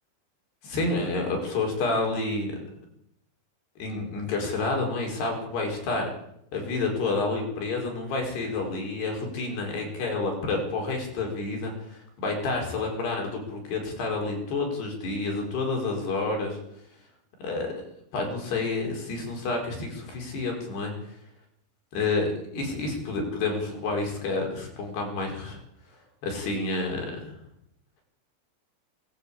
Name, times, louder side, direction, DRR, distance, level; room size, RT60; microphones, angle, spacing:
voice 1, 0.6-2.6 3.8-6.1 6.5-16.6 17.4-17.7 18.1-20.9 21.9-25.6 26.2-27.3, left 3 dB, 60° left, 2 dB, 6.8 m, -29 dB
22.0 x 19.5 x 8.5 m, 0.75 s
omnidirectional pair, 5.3 m